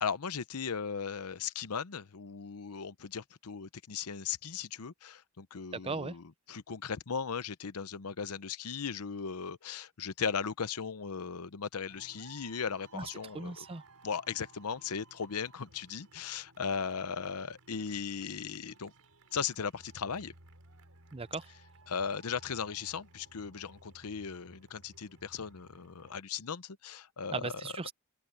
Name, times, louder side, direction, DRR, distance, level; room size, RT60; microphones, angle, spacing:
voice 1, 0.0-13.7 14.0-18.9 19.3-20.3 21.9-27.5, left 6 dB, 90° left, 0.8 m, -37 dB
voice 2, 5.7-6.2 12.9-13.8 21.1-21.5 27.3-27.9, right 4 dB, 25° right, 0.6 m, -38 dB
sound 1, 11.9-26.2, right 2 dB, 90° right, 4.4 m, -59 dB
open air
head